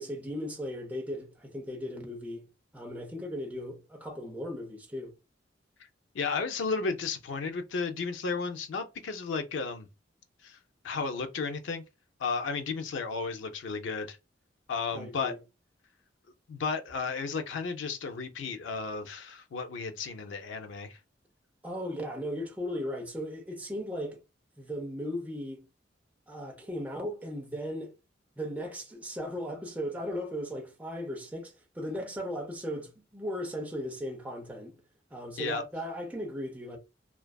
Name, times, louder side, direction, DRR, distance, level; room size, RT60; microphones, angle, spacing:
voice 1, 0.0-2.5 2.7-5.1 14.9-15.4 21.6-24.2 24.6-25.7 26.3-27.9 28.4-34.8 35.1-36.8, equal, 10° right, 0.6 m, -37 dB
voice 2, 6.1-9.9 10.4-10.6 10.8-11.8 12.2-14.2 14.7-15.3 16.5-21.0 35.4-35.6, left 4 dB, 90° left, 0.4 m, -33 dB
2.5 x 2.3 x 2.2 m
head